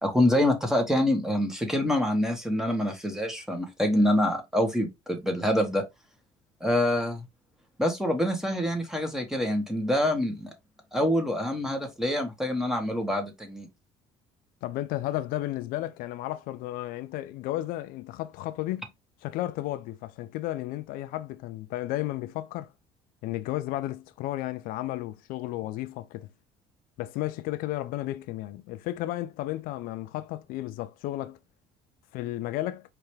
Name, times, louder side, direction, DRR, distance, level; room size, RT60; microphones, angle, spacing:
voice 1, 0.0-5.8 6.6-7.2 7.8-10.5 10.9-13.7, left 1 dB, 5° right, 1.4 m, -26 dB
voice 2, 14.6-18.9 19.2-22.7 23.2-26.3 27.0-31.4 32.1-32.8, left 15 dB, 75° left, 0.5 m, -33 dB
4.7 x 3.4 x 3.2 m
cardioid pair, 120°, 15 cm